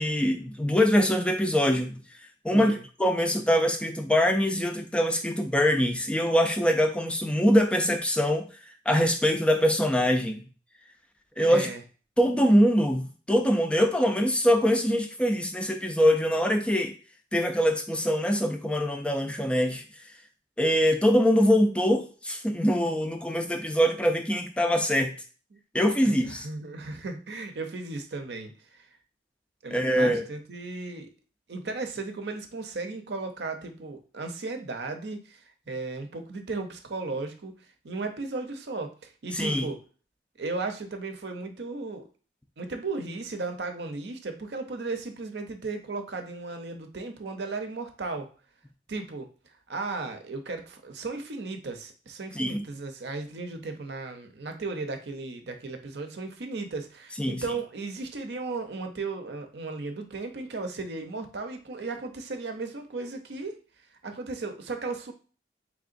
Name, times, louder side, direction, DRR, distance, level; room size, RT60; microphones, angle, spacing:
voice 1, 0.0-2.0 2.4-2.7 3.0-8.5 8.9-10.5 11.4-11.7 12.2-16.9 17.3-19.8 20.6-25.1 25.7-26.5 29.7-30.2 39.3-39.7 52.3-52.6 57.2-57.4, equal, 5° left, 4 dB, 0.4 m, -23 dB
voice 2, 2.5-2.8 11.4-11.8 25.5-25.6 26.0-28.9 29.6-31.1 31.5-37.5 37.8-39.8 40.4-42.1 42.6-48.3 48.9-49.3 49.7-63.6 64.0-65.1, right 3 dB, 65° right, 6 dB, 0.6 m, -35 dB
3.8 x 3.3 x 2.5 m, 0.38 s
head